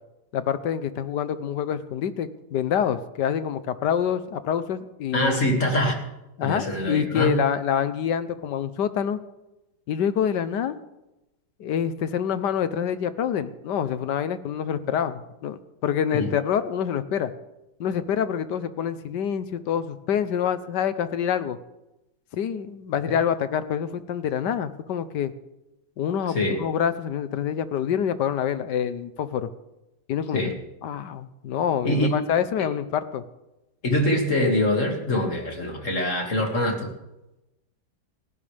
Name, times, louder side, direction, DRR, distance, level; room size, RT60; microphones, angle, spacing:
voice 1, 0.3-5.4 6.4-9.2 9.9-10.8 11.6-17.3 17.8-21.6 22.3-25.3 26.0-29.5 30.1-30.5 30.8-33.2, left 8 dB, 70° left, 12 dB, 1.4 m, -26 dB
voice 2, 5.1-6.0 6.4-7.4 16.1-16.3 23.1-23.2 26.3-26.6 30.3-30.5 31.8-32.2 33.8-36.9, left 1 dB, 40° left, 2 dB, 2.6 m, -24 dB
30.0 x 10.5 x 3.4 m, 0.94 s
omnidirectional pair, 2.0 m